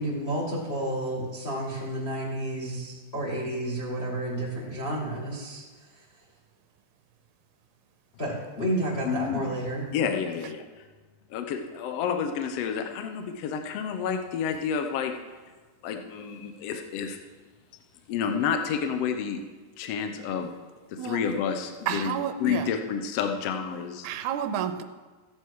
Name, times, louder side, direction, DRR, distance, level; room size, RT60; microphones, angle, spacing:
voice 1, 0.0-5.6 8.2-9.8, right 1 dB, 25° left, -4 dB, 1.5 m, -31 dB
voice 2, 9.0-9.5 9.9-10.6 11.3-15.1 15.8-17.2 18.1-19.4 19.8-20.5 21.0-24.1, left 7 dB, 75° left, 6 dB, 1.4 m, -29 dB
voice 3, 21.9-22.7 24.0-24.8, right 9 dB, 75° right, 7 dB, 1.9 m, -30 dB
14.5 x 8.3 x 4.7 m, 1.3 s
omnidirectional pair, 4.1 m